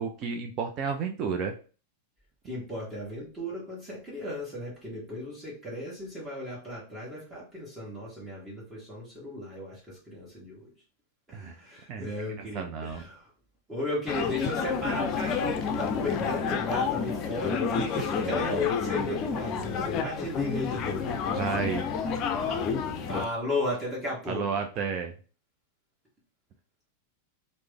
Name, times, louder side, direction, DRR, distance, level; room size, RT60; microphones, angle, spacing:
voice 1, 0.0-1.5 11.3-11.5 11.9-12.1 12.5-13.0 21.3-21.9 24.3-25.1, right 5 dB, 40° right, 4 dB, 0.4 m, -31 dB
voice 2, 2.4-10.7 11.3-13.3 13.7-21.1 23.1-24.5, left 1 dB, 15° right, -6 dB, 1.3 m, -35 dB
sound 1, 14.1-23.3, left 6 dB, 40° left, 0.5 m, -29 dB
3.2 x 2.1 x 3.4 m, 0.36 s
hypercardioid pair, 95°, 0 cm